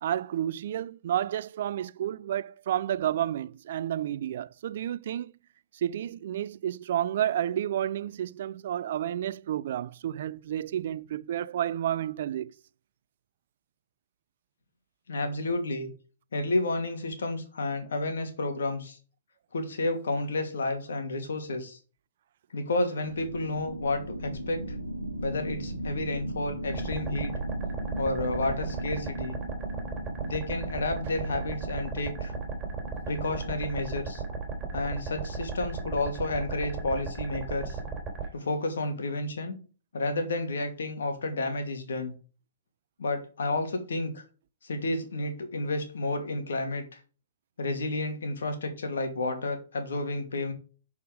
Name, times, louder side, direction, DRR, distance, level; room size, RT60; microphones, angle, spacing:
voice 1, 0.0-5.3 5.7-12.5 34.6-34.7, right 11 dB, 50° right, 0.3 m, -31 dB
voice 2, 15.1-15.9 16.3-19.0 19.5-21.8 22.5-24.8 25.2-27.3 28.0-29.4 30.2-32.3 33.1-34.2 34.7-37.8 38.3-39.6 39.9-42.1 43.0-44.2 44.6-47.0 47.6-50.5, left 2 dB, 65° left, 2.5 m, -31 dB
sound 1, 23.0-35.3, right 1 dB, 85° left, 1.7 m, -38 dB
sound 2, 26.7-38.3, right 4 dB, 15° right, 3.5 m, -36 dB
11.0 x 4.8 x 5.1 m
figure-of-eight pair, 105°, 0 cm